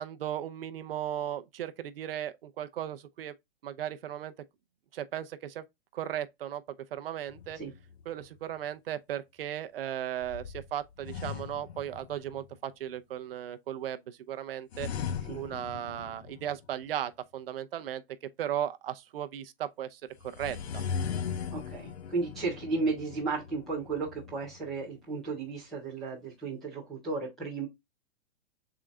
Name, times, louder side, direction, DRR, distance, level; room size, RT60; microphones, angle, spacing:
voice 1, 0.0-3.3 3.6-4.3 4.9-5.6 5.9-6.6 6.9-7.6 8.1-14.9 15.3-18.0 18.4-20.6, right 11 dB, 65° right, 0.6 m, -36 dB
sound 1, 7.3-8.3 10.2-12.5 14.7-16.9 20.2-24.9, left 7 dB, 85° left, 0.7 m, -39 dB
voice 2, 21.5-27.7, right 4 dB, ahead, 0.3 m, -34 dB
3.8 x 3.7 x 3.4 m
hypercardioid pair, 165°, 32 cm